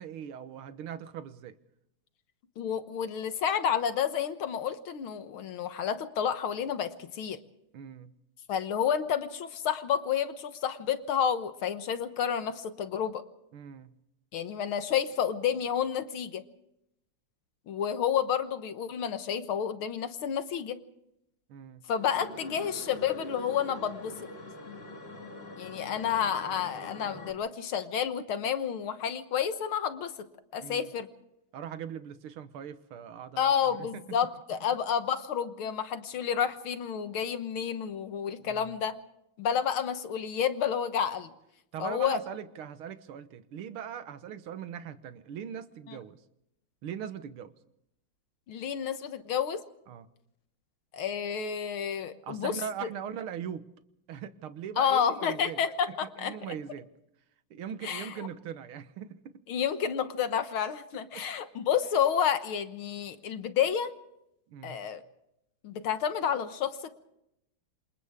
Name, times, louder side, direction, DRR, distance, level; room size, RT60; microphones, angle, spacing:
voice 1, 0.0-1.5 7.7-8.1 13.5-13.9 21.5-21.8 30.6-30.9 31.5-33.5 33.8-34.0 38.4-38.7 41.7-46.2 46.8-47.5 49.9-50.1 52.2-53.7 54.1-55.6 56.0-56.9 57.5-59.4 61.1-61.3 64.5-64.8, right 8 dB, 85° right, 11 dB, 2.0 m, -40 dB
voice 2, 2.6-7.4 8.5-13.2 14.3-16.4 17.7-20.8 21.9-24.1 25.6-30.1 30.5-31.1 33.4-39.0 39.4-41.3 41.8-42.2 45.9-46.0 48.5-49.6 50.9-52.9 54.8-56.4 57.8-58.3 59.5-63.9 64.6-65.0 65.6-66.8, left 8 dB, 80° left, 10 dB, 2.0 m, -30 dB
sound 1, 21.9-27.3, left 1 dB, 30° left, 2.3 m, -44 dB
27.5 x 27.5 x 3.6 m, 0.79 s
omnidirectional pair, 2.3 m